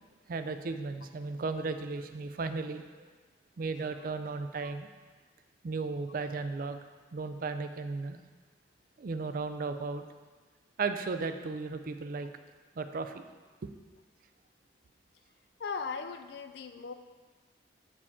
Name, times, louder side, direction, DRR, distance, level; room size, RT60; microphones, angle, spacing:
voice 1, 0.3-3.1 3.6-4.9 5.6-6.8 7.1-8.2 9.0-10.0 10.8-12.3 12.8-13.2 13.6-13.7, right 4 dB, 50° right, 9 dB, 0.4 m, -35 dB
voice 2, 15.6-16.9, left 5 dB, 65° left, 9 dB, 0.4 m, -38 dB
8.3 x 4.9 x 3.6 m, 1.4 s
head